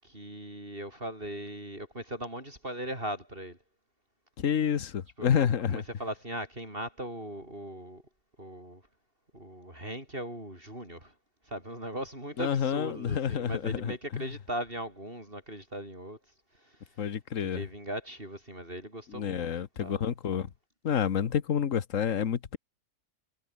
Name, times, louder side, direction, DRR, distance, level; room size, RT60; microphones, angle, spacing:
voice 1, 0.0-3.6 5.2-8.0 8.4-8.8 9.3-11.1 11.5-16.2 16.5-16.9 17.4-19.5 19.8-20.0, right 1 dB, 35° right, 8.4 m, -39 dB
voice 2, 4.4-5.8 12.4-14.3 17.0-17.6 19.1-20.5 20.8-22.6, left 8 dB, 60° left, 1.5 m, -29 dB
omnidirectional pair, 1.6 m